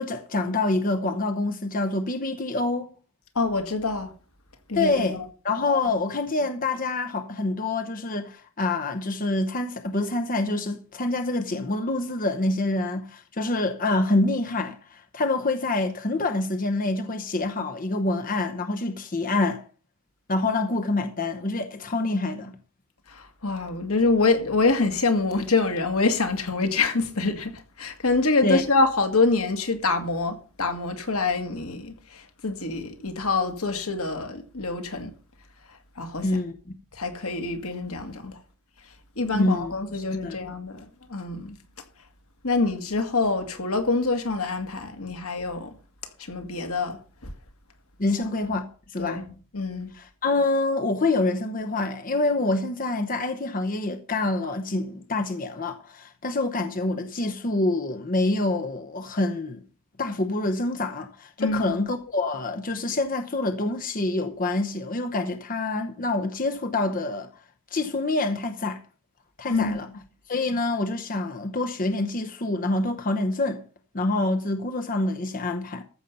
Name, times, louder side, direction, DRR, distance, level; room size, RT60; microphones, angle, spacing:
voice 1, 0.0-2.9 4.7-5.2 5.4-19.6 20.3-22.5 28.4-28.6 36.2-36.5 39.3-40.4 48.0-49.3 49.9-59.6 60.0-67.3 67.7-68.8 69.4-69.9 70.3-73.6 73.9-75.8, left 2 dB, 40° left, 0.9 m, -26 dB
voice 2, 3.4-4.1 4.7-5.2 23.1-35.1 35.7-36.3 36.9-38.4 39.2-41.6 42.4-45.7 46.2-47.0 49.0-49.2 49.5-49.9 61.4-61.8 69.5-69.9, left 3 dB, 80° left, 2.0 m, -26 dB
14.0 x 7.2 x 5.6 m
head